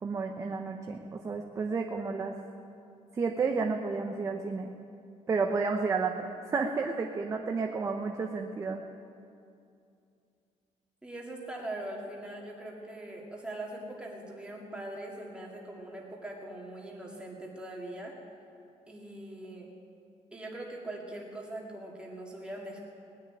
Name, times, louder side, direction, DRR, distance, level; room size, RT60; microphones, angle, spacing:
voice 1, 0.0-2.3 3.1-4.7 5.3-8.8, right 4 dB, 25° right, 3 dB, 0.7 m, -31 dB
voice 2, 11.0-18.1 18.9-19.7 20.3-22.8, right 1 dB, 10° right, -2 dB, 2.1 m, -41 dB
19.0 x 6.6 x 10.0 m, 2.6 s
cardioid pair, 175°, 13 cm